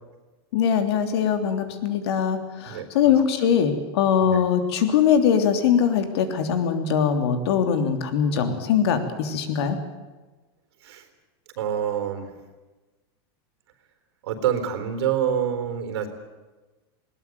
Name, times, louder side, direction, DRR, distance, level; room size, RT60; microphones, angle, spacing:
voice 1, 0.5-9.8, left 7 dB, 70° left, 7 dB, 3.3 m, -22 dB
voice 2, 11.6-12.3 14.2-16.1, right 9 dB, 75° right, 9 dB, 4.0 m, -26 dB
20.5 x 19.0 x 9.5 m, 1.2 s
supercardioid pair, 155°, 14 cm